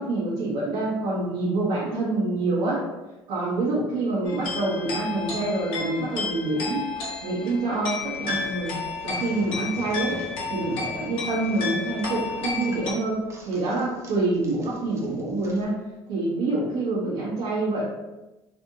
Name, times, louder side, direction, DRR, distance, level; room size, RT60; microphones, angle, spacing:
voice 1, 0.0-2.9 3.3-6.9 7.2-8.8 9.0-10.2 10.5-17.9, right 2 dB, 80° right, -10 dB, 1.2 m, -26 dB
sound 1, 4.3-12.9, left 4 dB, 60° left, 1.2 m, -32 dB
sound 2, 8.0-15.6, right 2 dB, 30° right, 0.6 m, -42 dB
3.4 x 2.8 x 2.5 m, 1.0 s
cardioid pair, 115°, 10 cm